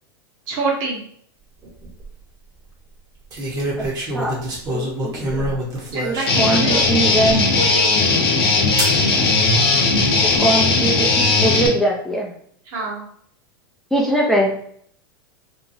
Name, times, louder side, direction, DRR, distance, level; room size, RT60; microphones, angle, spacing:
voice 1, 0.5-1.0 5.9-8.2 12.7-13.0, right 3 dB, 55° right, -1 dB, 1.1 m, -27 dB
sound 1, 1.6-2.1 3.3-6.6 7.3-7.4 8.8-9.0 9.9-10.4, right 1 dB, 30° right, 1.0 m, -26 dB
voice 2, 3.8-4.4 4.7-5.6 6.0-7.4 10.2-12.3 13.9-14.6, right 1 dB, 5° left, -3 dB, 0.4 m, -22 dB
Guitar, 6.3-11.7, left 3 dB, 80° left, 0.7 m, -17 dB
2.9 x 2.2 x 2.6 m, 0.62 s
hypercardioid pair, 110°, 12 cm